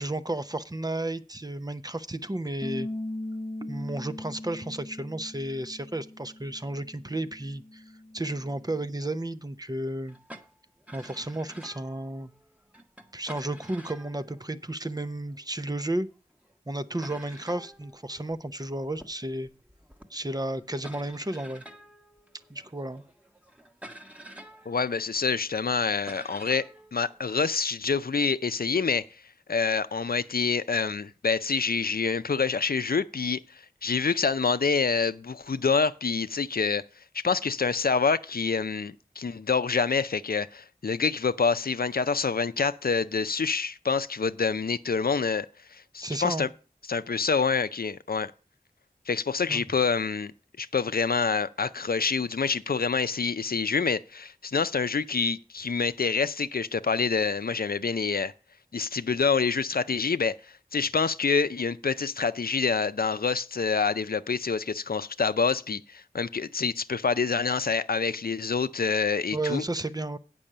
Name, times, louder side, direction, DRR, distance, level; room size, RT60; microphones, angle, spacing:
voice 1, 0.0-2.9 3.6-7.8 8.1-10.2 10.9-12.3 13.1-16.1 16.7-19.5 20.1-21.6 22.5-23.0 46.0-46.5 49.5-49.6 69.3-70.2, right 1 dB, 25° right, 0.7 m, -33 dB
Bass guitar, 2.6-8.9, left 1 dB, 15° left, 0.5 m, -40 dB
sound 1, 10.1-15.4 16.1-16.2 16.4-16.5 16.9-28.1, right 1 dB, 10° right, 1.2 m, -50 dB
voice 2, 24.7-29.1 29.5-36.8 37.1-46.5 46.9-48.3 49.1-50.3 50.6-58.3 58.7-69.6, left 5 dB, 80° left, 0.5 m, -27 dB
8.7 x 6.2 x 6.6 m
wide cardioid pair, 40°, 15 cm